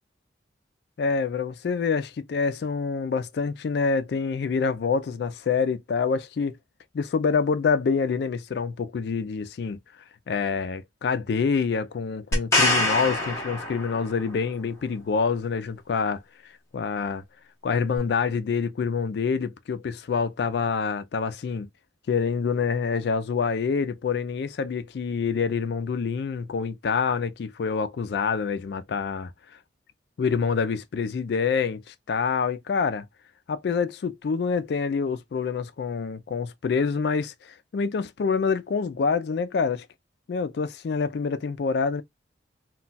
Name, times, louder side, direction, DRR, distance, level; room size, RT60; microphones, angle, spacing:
voice 1, 1.0-6.6 6.9-9.8 10.3-17.2 17.6-21.7 22.1-29.3 30.2-33.1 33.5-39.9 40.3-42.0, left 5 dB, 60° left, 0.3 m, -26 dB
sound 1, 12.3-14.3 18.0-18.1, left 2 dB, 15° left, 0.8 m, -24 dB
2.2 x 2.2 x 3.9 m
head